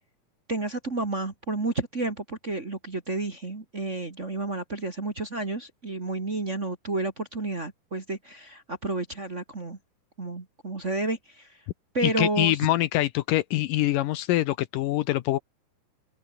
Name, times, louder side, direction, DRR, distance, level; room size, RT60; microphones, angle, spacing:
voice 1, 0.5-9.8 10.2-11.6 11.9-12.6, right 2 dB, 25° right, 1.8 m, -31 dB
voice 2, 12.0-15.4, left 15 dB, 75° left, 2.3 m, -24 dB
omnidirectional pair, 4.2 m